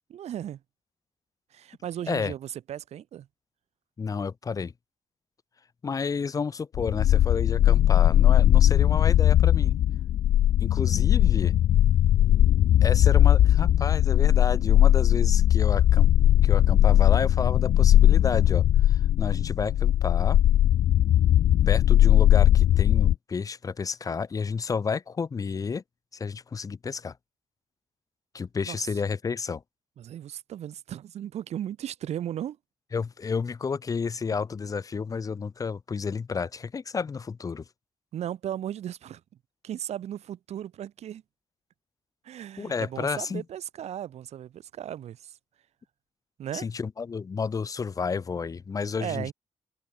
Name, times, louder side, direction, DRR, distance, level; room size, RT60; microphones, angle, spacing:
voice 1, 0.1-0.6 1.5-3.3 28.7-28.9 30.0-32.6 38.1-39.2 39.6-41.2 42.2-45.4 46.4-46.7 49.0-49.3, right 10 dB, 90° right, 6.5 m, -36 dB
voice 2, 4.0-4.7 5.8-9.8 10.6-11.5 12.8-16.1 16.4-20.4 21.7-25.8 26.1-27.1 28.3-29.6 32.9-37.6 42.6-43.4 46.5-49.3, left 5 dB, 35° left, 2.3 m, -31 dB
sound 1, 6.7-23.1, left 12 dB, 70° left, 0.4 m, -19 dB
wide cardioid pair, 165°, 11 cm